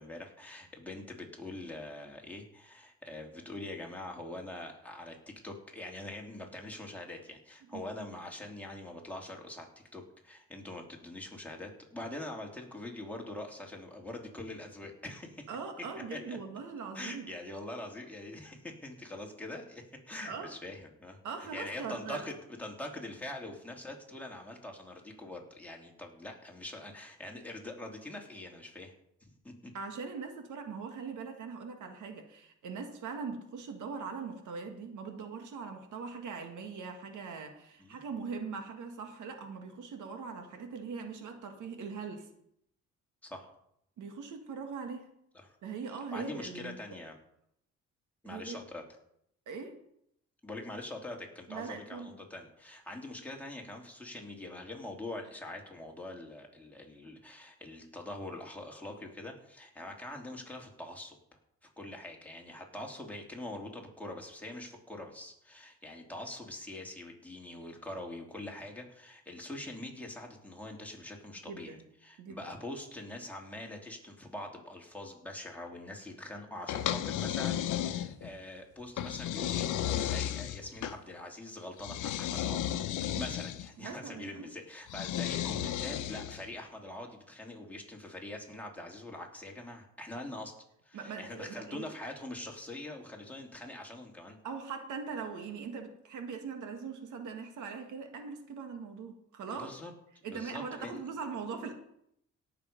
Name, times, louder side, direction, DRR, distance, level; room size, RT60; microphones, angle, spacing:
voice 1, 0.0-9.7 9.9-15.4 16.1-16.4 16.9-21.2 21.5-28.9 29.2-29.7 37.8-38.0 43.2-43.5 45.4-45.6 46.1-47.2 48.2-48.8 50.4-61.2 61.8-71.8 72.0-90.5 90.8-94.4 99.6-99.9 100.3-101.0, left 1 dB, 5° left, 0 dB, 3.0 m, -44 dB
voice 2, 15.5-17.3 20.3-20.5 21.2-22.2 29.7-42.3 44.0-45.1 45.6-47.0 48.3-48.6 49.5-49.7 51.5-52.1 71.5-71.8 72.2-72.4 83.8-84.5 90.9-91.9 94.4-99.7 100.2-101.7, right 5 dB, 75° right, 6 dB, 1.9 m, -41 dB
sound 1, 76.7-78.4 79.0-81.0 81.8-83.7 84.9-86.5, left 11 dB, 80° left, 0.9 m, -34 dB
17.5 x 7.1 x 5.3 m, 0.75 s
cardioid pair, 90°, 30 cm